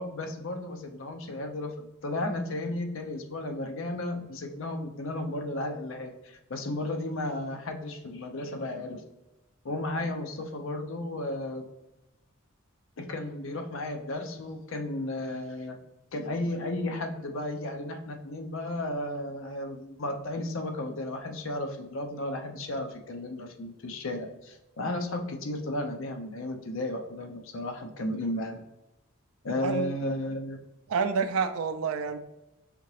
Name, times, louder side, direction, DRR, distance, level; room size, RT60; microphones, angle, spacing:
voice 1, 0.0-9.0 9.6-11.6 13.0-15.8 16.1-28.6 29.4-30.6, left 1 dB, 65° left, 4 dB, 0.6 m, -34 dB
voice 2, 30.9-32.2, right 5 dB, 85° right, 10 dB, 0.4 m, -28 dB
5.0 x 2.8 x 3.1 m, 0.93 s
head